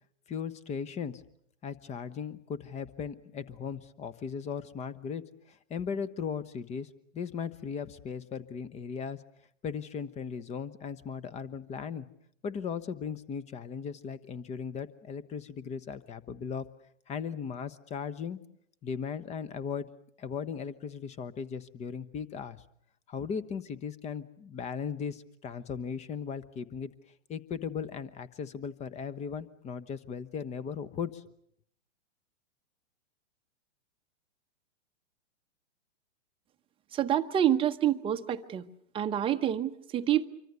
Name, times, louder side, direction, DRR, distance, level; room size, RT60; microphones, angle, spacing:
voice 1, 0.3-1.2 1.6-9.2 9.6-12.1 12.4-16.7 17.1-18.4 18.8-19.9 20.2-22.6 23.1-26.9 27.3-31.3, left 6 dB, 20° left, 17 dB, 1.0 m, -37 dB
voice 2, 36.9-38.7 38.9-40.3, right 10 dB, 15° right, 6 dB, 0.9 m, -27 dB
26.0 x 24.0 x 6.8 m, 0.69 s
hypercardioid pair, 115°, 36 cm